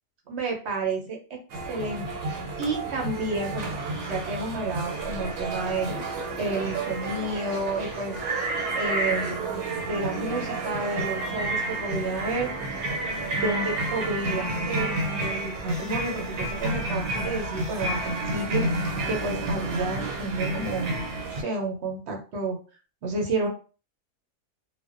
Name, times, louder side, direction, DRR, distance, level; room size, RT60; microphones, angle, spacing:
voice 1, 0.3-1.4 1.7-3.7 4.1-5.9 6.4-8.2 8.7-9.5 9.9-12.5 12.8-12.9 13.4-21.0 21.3-22.6 23.0-23.5, right 3 dB, 60° right, 1 dB, 0.7 m, -31 dB
sound 1, 1.5-21.4, right 2 dB, 90° right, 1.2 m, -30 dB
2.5 x 2.1 x 2.3 m, 0.36 s
omnidirectional pair, 1.6 m